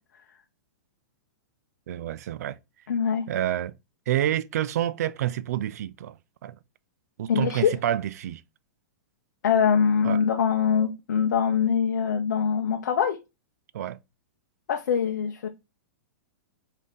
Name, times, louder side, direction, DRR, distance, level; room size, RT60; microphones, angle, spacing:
voice 1, 1.9-2.6 3.3-3.7 4.1-6.2 6.4-6.6 7.2-8.4 10.0-10.2 13.7-14.0, right 12 dB, 60° right, 0.4 m, -28 dB
voice 2, 2.9-3.3 7.3-7.8 9.4-13.2 14.7-15.5, left 7 dB, 80° left, 0.6 m, -23 dB
5.3 x 2.7 x 3.7 m
supercardioid pair, 170°, 10 cm